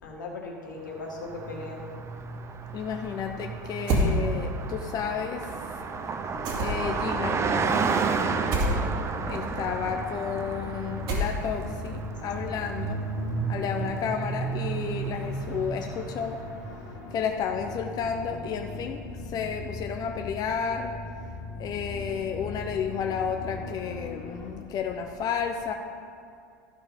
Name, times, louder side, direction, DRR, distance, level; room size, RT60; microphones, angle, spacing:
voice 1, 0.0-1.8 8.4-8.8, left 3 dB, 85° left, -1 dB, 2.0 m, -38 dB
Car passing by, 1.0-17.0, right 5 dB, 30° right, 0.7 m, -32 dB
voice 2, 2.7-5.8 6.6-7.4 9.3-13.0 13.5-16.4 16.7-25.7, left 7 dB, 40° left, 4 dB, 0.8 m, -32 dB
sound 1, 3.9-4.1 6.4-7.0 8.5-8.8 11.1-11.6, right 1 dB, 60° right, 2.3 m, -25 dB
sound 2, 6.3-24.5, left 2 dB, 60° left, 1.8 m, -40 dB
13.0 x 5.2 x 5.4 m, 2.4 s
hypercardioid pair, 90°, 10 cm